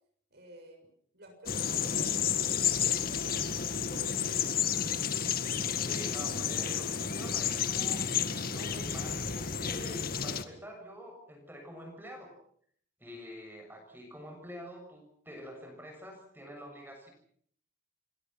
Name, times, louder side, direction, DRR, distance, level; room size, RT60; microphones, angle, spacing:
voice 1, 0.3-0.9 1.1-4.6, right 1 dB, 55° right, 4 dB, 7.3 m, -51 dB
sound 1, 1.5-10.4, left 7 dB, 50° left, 1.9 m, -31 dB
voice 2, 5.8-12.3 13.0-17.1, equal, 10° right, 2 dB, 7.0 m, -46 dB
29.0 x 23.5 x 5.9 m, 0.62 s
head